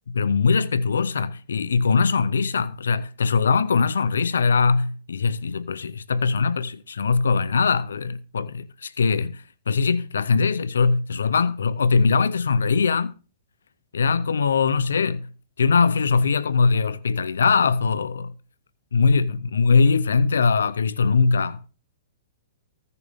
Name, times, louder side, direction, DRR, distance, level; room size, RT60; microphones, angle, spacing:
voice 1, 0.1-13.1 13.9-15.3 15.6-18.3 18.9-21.6, left 5 dB, 90° left, 0.6 m, -21 dB
15.5 x 6.8 x 3.5 m
hypercardioid pair, 135°, 0 cm